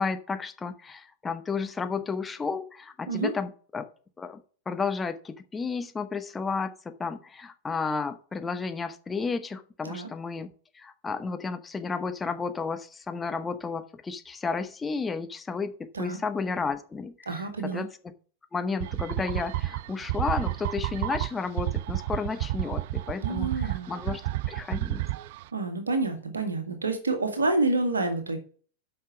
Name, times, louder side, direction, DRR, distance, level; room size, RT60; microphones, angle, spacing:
voice 1, 0.0-3.9 4.2-18.1 18.5-24.2 24.5-25.0, left 4 dB, 15° left, 8 dB, 1.0 m, -32 dB
voice 2, 17.3-17.8 23.2-23.9 25.5-28.4, right 3 dB, 75° right, 7 dB, 1.9 m, -28 dB
sound 1, 18.8-25.4, right 15 dB, 50° right, 0.4 m, -31 dB
8.5 x 5.8 x 5.9 m, 0.42 s
figure-of-eight pair, 90°, 0 cm